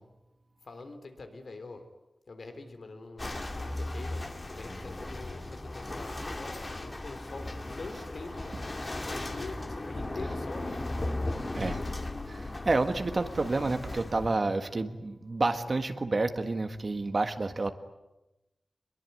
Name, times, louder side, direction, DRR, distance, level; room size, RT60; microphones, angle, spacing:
voice 1, 0.6-1.8 2.3-7.5 7.8-8.6 9.2-10.8, left 3 dB, 75° left, 7 dB, 3.8 m, -44 dB
sound 1, 3.2-14.4, left 2 dB, 35° left, 2.4 m, -36 dB
voice 2, 12.3-17.7, right 3 dB, 50° right, 7 dB, 1.6 m, -29 dB
24.0 x 22.5 x 9.5 m, 0.97 s
wide cardioid pair, 110°, 0 cm